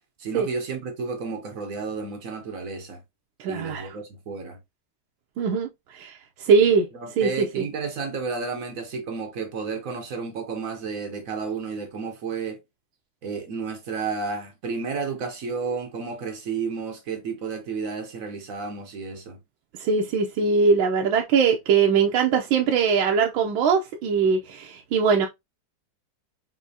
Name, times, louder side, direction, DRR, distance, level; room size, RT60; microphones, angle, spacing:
voice 1, 0.2-3.0 3.5-4.6 6.9-12.6 13.2-19.4, right 5 dB, 55° right, 1.0 m, -32 dB
voice 2, 3.4-4.0 5.4-5.7 5.9-6.9 7.2-7.6 19.8-25.3, right 5 dB, 80° right, 1.5 m, -21 dB
5.9 x 2.8 x 2.7 m
omnidirectional pair, 2.2 m